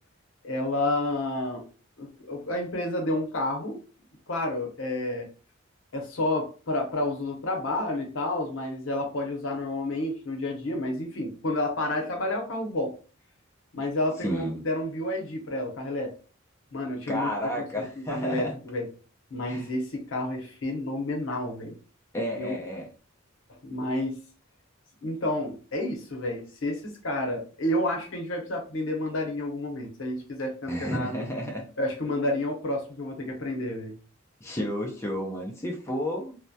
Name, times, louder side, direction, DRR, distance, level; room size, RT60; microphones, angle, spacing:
voice 1, 0.4-1.6 2.0-3.8 4.3-5.3 5.9-12.9 13.7-16.1 16.7-17.3 17.6-17.8 18.1-18.9 19.3-21.8 22.3-22.6 23.6-24.2 25.0-31.1 31.8-34.0, left 1 dB, 80° left, 2 dB, 0.7 m, -30 dB
voice 2, 14.2-14.6 17.1-18.6 19.5-19.7 22.1-22.9 30.7-31.7 34.4-36.4, equal, 15° left, -1 dB, 0.5 m, -31 dB
2.2 x 2.1 x 2.6 m, 0.37 s
head